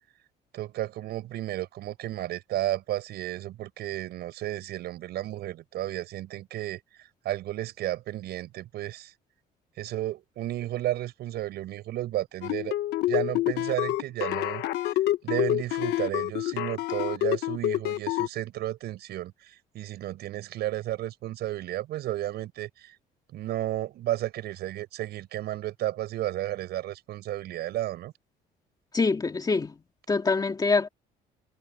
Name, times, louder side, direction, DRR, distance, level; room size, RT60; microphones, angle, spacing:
voice 1, 0.5-6.8 7.2-9.1 9.8-12.7 13.1-14.6 15.2-22.9 23.3-28.1, right 14 dB, 75° right, 7.3 m, -33 dB
sound 1, 12.4-18.3, left 14 dB, 80° left, 1.3 m, -27 dB
voice 2, 28.9-29.7 30.1-30.9, left 4 dB, 20° left, 2.3 m, -24 dB
cardioid pair, 110°, 17 cm